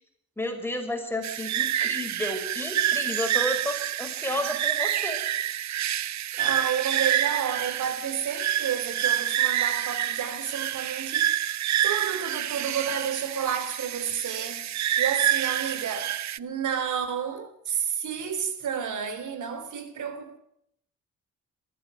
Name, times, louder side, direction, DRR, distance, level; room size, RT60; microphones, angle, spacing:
voice 1, 0.4-5.2, left 1 dB, 10° left, 6.2 m, -32 dB
sound 1, 1.2-16.4, right 11 dB, 65° right, 0.8 m, -28 dB
voice 2, 6.3-11.5 11.8-20.4, right 8 dB, 80° right, 3.7 m, -31 dB
22.5 x 15.0 x 7.8 m
cardioid pair, 100°, 30 cm